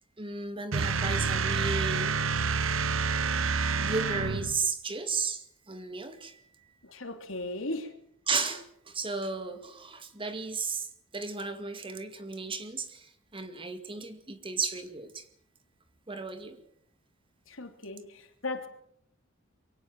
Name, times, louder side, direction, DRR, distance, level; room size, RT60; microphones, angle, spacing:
voice 1, 0.2-2.2 3.8-6.7 8.3-15.3 16.1-16.6, right 4 dB, 25° right, 2.2 m, -34 dB
sound 1, 0.7-4.6, right 5 dB, 90° right, 1.0 m, -28 dB
voice 2, 6.8-7.9 17.5-18.7, left 2 dB, 85° left, 3.1 m, -37 dB
23.5 x 17.0 x 7.6 m
head